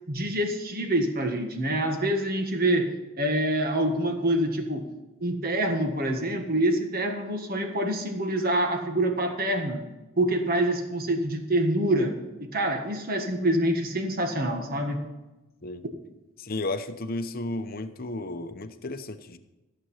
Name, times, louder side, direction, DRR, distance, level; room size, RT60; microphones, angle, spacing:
voice 1, 0.1-2.9 3.2-4.9 5.2-9.8 10.2-15.0, right 1 dB, 45° right, 5 dB, 1.6 m, -26 dB
voice 2, 16.4-19.4, left 2 dB, 45° left, 8 dB, 0.8 m, -33 dB
14.5 x 7.7 x 5.6 m, 1.1 s
head